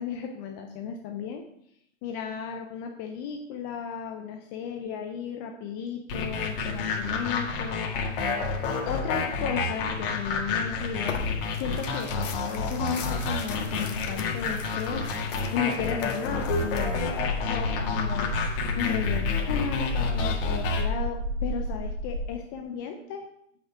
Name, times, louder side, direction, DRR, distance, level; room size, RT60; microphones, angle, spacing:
voice 1, 0.0-1.4 2.0-7.9 8.9-11.2 11.5-18.4 18.8-23.3, left 7 dB, 20° left, 4 dB, 0.4 m, -35 dB
sound 1, 6.1-20.8, left 4 dB, 45° left, 1.9 m, -30 dB
Tearing, 11.0-17.2, left 5 dB, 75° left, 1.4 m, -39 dB
sound 2, 16.3-22.3, left 2 dB, 70° right, 2.0 m, -31 dB
8.4 x 6.0 x 4.6 m, 0.74 s
hypercardioid pair, 130°, 38 cm